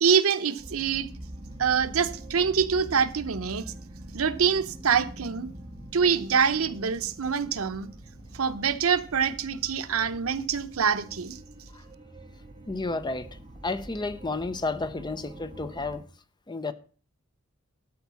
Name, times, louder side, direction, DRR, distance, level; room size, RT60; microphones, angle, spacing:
voice 1, 0.0-1.1 1.6-3.6 4.1-5.5 5.9-7.9 8.3-11.4, right 6 dB, 85° right, 0.8 m, -25 dB
sound 1, 0.6-16.0, right 1 dB, 25° right, 1.6 m, -44 dB
voice 2, 12.7-13.3 13.6-16.0 16.5-16.7, left 3 dB, 20° left, 0.6 m, -31 dB
12.5 x 4.8 x 6.9 m
head